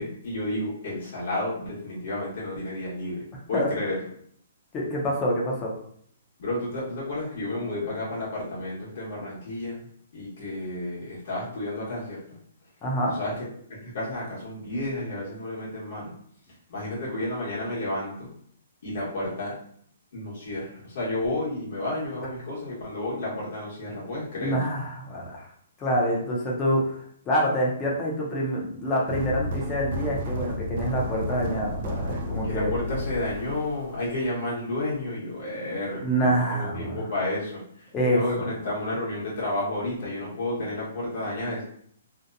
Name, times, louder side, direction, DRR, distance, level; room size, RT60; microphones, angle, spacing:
voice 1, 0.0-4.1 6.4-9.8 10.1-12.4 13.0-13.4 13.7-16.1 16.7-18.3 18.8-19.6 20.1-24.6 32.4-41.6, left 1 dB, 55° left, -7 dB, 1.0 m, -31 dB
voice 2, 4.7-5.7 12.8-13.1 24.4-25.5 25.8-27.0 27.3-32.7 36.0-37.0 37.9-38.2, equal, 15° left, -3 dB, 0.6 m, -26 dB
sound 1, 29.1-34.3, left 1 dB, 45° right, 0.3 m, -32 dB
2.7 x 2.1 x 2.4 m, 0.62 s
hypercardioid pair, 165°, 0 cm